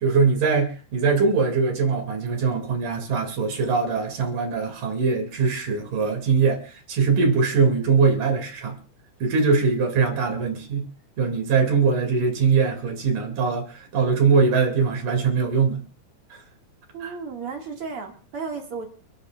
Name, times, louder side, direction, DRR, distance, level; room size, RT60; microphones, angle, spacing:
voice 1, 0.0-8.8 9.2-10.9 11.2-15.8 16.3-16.4 17.0-17.2, right 5 dB, 65° right, 4 dB, 4.1 m, -22 dB
voice 2, 16.9-18.9, right 5 dB, 45° right, 1 dB, 2.7 m, -33 dB
29.5 x 11.0 x 2.4 m, 0.40 s
omnidirectional pair, 4.0 m